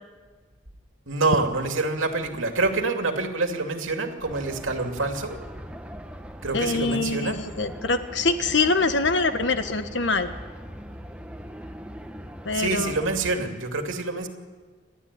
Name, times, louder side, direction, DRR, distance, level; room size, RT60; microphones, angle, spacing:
voice 1, 1.1-5.4 6.4-7.4 12.5-14.3, right 3 dB, 80° right, 4 dB, 2.7 m, -26 dB
sound 1, 4.2-13.3, equal, 5° right, 1.0 m, -40 dB
voice 2, 6.5-10.3 12.4-12.9, left 3 dB, 60° left, 8 dB, 1.4 m, -24 dB
29.0 x 12.5 x 9.8 m, 1.5 s
head